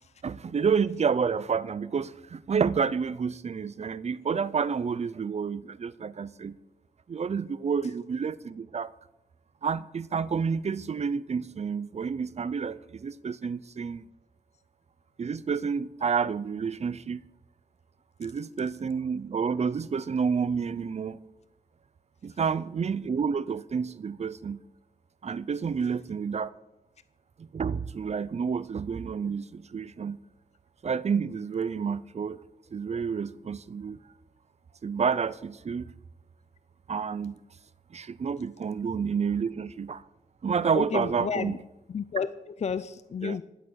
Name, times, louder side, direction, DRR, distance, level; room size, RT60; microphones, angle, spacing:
voice 1, 0.2-6.6 7.1-8.9 9.6-14.0 15.2-17.2 18.2-21.2 22.2-24.6 25.2-26.5 27.4-30.2 30.8-32.4 32.7-34.0 34.8-35.9 36.9-37.3 37.9-40.0 40.4-41.5 43.2-43.4, right 6 dB, 50° right, 0.6 m, -29 dB
voice 2, 40.7-41.6 41.9-43.4, left 6 dB, 50° left, 0.5 m, -32 dB
16.0 x 11.0 x 6.4 m
wide cardioid pair, 120°, 14 cm